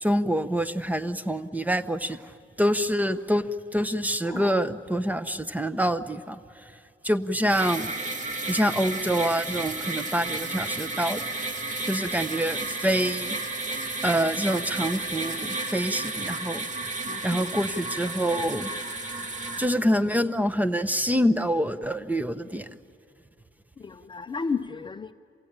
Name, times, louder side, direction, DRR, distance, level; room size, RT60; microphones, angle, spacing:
voice 1, 0.0-2.2 2.6-3.5 3.7-6.4 7.0-7.9 8.5-11.2 11.8-13.4 14.0-16.6 17.2-18.7 19.6-22.7, equal, 10° right, 11 dB, 0.8 m, -26 dB
sound 1, 7.5-19.7, right 2 dB, 40° right, 2.4 m, -32 dB
voice 2, 17.0-17.5 23.8-25.1, left 5 dB, 25° left, 9 dB, 0.6 m, -33 dB
27.5 x 16.5 x 8.9 m, 2.4 s
cardioid pair, 90°, 20 cm